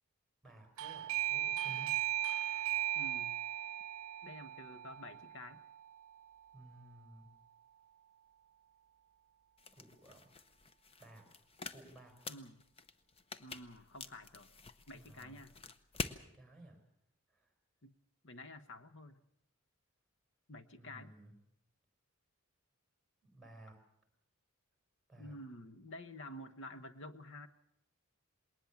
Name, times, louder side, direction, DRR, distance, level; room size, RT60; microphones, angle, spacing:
voice 1, 0.4-2.0 6.5-7.3 9.7-10.3 11.0-11.2 11.7-12.2 14.9-15.4 15.9-16.8 17.3-17.5 20.8-21.3 23.2-23.8 25.1-25.4, right 1 dB, ahead, 4 dB, 4.7 m, -56 dB
Doorbell, 0.8-7.3, right 13 dB, 75° right, 0.7 m, -38 dB
voice 2, 2.9-3.4 4.2-5.6 12.3-12.6 13.4-14.5 14.9-15.5 17.8-18.0 18.2-19.2 20.5-21.1 25.2-27.5, left 1 dB, 55° left, 11 dB, 1.1 m, -50 dB
sound 1, 9.6-16.2, left 4 dB, 25° left, 0.7 m, -47 dB
20.5 x 19.0 x 7.2 m, 0.77 s
head